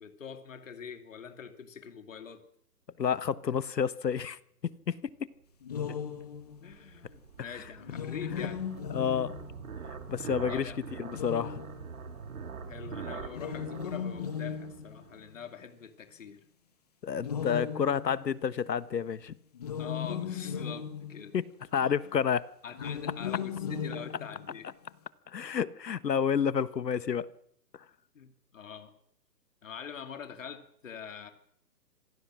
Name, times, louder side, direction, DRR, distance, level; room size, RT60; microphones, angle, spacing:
voice 1, 0.0-2.4 6.6-8.7 10.5-10.8 12.7-16.4 19.8-21.4 21.7-22.1 22.6-24.7 28.1-29.0 29.6-31.3, left 7 dB, 50° left, 2.7 m, -44 dB
voice 2, 3.0-5.1 8.3-8.4 8.9-9.3 10.1-10.7 11.0-11.6 17.0-19.3 21.3-21.5 21.7-22.5 25.3-27.3 27.7-27.8, left 7 dB, 75° left, 1.5 m, -30 dB
sound 1, 5.6-6.7 7.8-9.8 11.0-12.1 13.3-15.4 17.2-18.6 19.5-21.5 22.7-24.7, left 7 dB, 25° left, 1.6 m, -37 dB
sound 2, 5.7-15.3, right 5 dB, 55° right, 2.5 m, -44 dB
26.0 x 19.0 x 6.3 m
hypercardioid pair, 175°, 49 cm